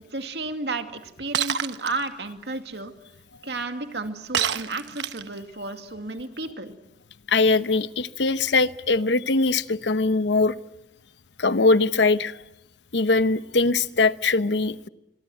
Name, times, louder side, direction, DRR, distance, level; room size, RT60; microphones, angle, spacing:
voice 1, 0.1-2.9 3.4-6.7, right 3 dB, 70° right, 2.4 m, -32 dB
Shatter, 1.3-1.9 4.3-5.4, right 9 dB, 90° right, 1.1 m, -26 dB
voice 2, 7.3-10.5 11.4-12.4 12.9-14.9, left 3 dB, 85° left, 0.9 m, -21 dB
26.0 x 23.0 x 7.8 m
head